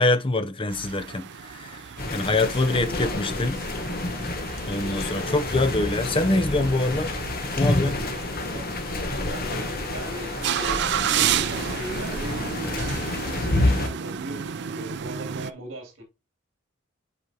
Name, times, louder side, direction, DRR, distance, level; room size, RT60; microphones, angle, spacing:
voice 1, 0.0-1.8 2.1-3.6 4.7-7.1 7.6-8.0, left 2 dB, 25° left, 0.6 m, -24 dB
sound 1, 0.7-15.5, right 9 dB, 55° right, 0.4 m, -32 dB
sound 2, 2.0-13.9, left 2 dB, 45° left, 1.1 m, -29 dB
voice 2, 2.5-3.0 8.4-8.7 9.1-16.0, equal, 75° right, 2.6 m, -39 dB
7.9 x 5.0 x 2.8 m
head